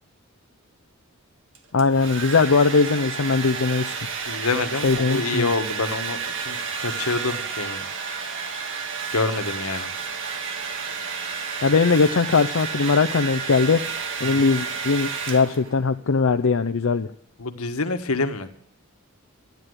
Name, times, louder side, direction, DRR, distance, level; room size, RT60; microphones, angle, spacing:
Domestic sounds home sounds, 1.5-15.8, right 6 dB, 60° right, 1.8 m, -31 dB
voice 1, 1.7-4.0 4.8-5.5 11.6-13.8 14.2-17.1, left 4 dB, 65° left, 7 dB, 0.6 m, -20 dB
voice 2, 4.3-7.8 9.1-9.9 14.2-14.5 17.4-18.5, left 3 dB, 85° left, 8 dB, 1.5 m, -27 dB
13.5 x 10.5 x 8.0 m, 0.65 s
head